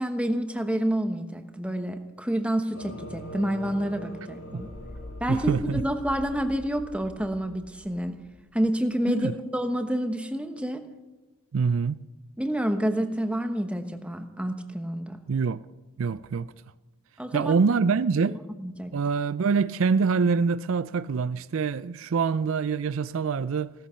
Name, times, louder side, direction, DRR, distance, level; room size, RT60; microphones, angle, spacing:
voice 1, 0.0-4.7 5.2-8.2 8.5-10.8 12.4-15.2 17.2-17.5 18.6-18.9, equal, 5° right, 1.1 m, -28 dB
sound 1, 2.7-8.4, equal, 65° left, 6.2 m, -41 dB
voice 2, 5.3-5.8 9.1-9.3 11.5-12.1 15.3-15.6 16.0-16.5 17.3-18.4 18.9-23.7, right 5 dB, 65° right, 0.4 m, -25 dB
17.5 x 13.5 x 5.7 m
head